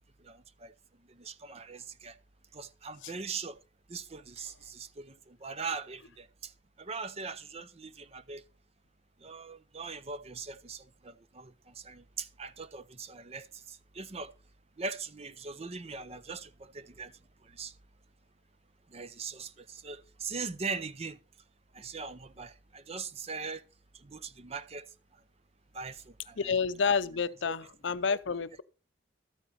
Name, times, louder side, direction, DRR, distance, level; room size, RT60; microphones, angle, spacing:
voice 1, 0.2-0.7 1.1-2.1 2.5-3.6 3.9-6.5 6.8-8.4 9.2-14.3 14.8-17.1 17.4-17.7 18.9-21.2 21.7-23.6 23.9-24.9 25.7-26.6 27.4-27.5, right 4 dB, 30° right, 0.6 m, -41 dB
voice 2, 26.4-28.6, left 5 dB, 70° left, 0.6 m, -29 dB
13.0 x 8.9 x 4.2 m
head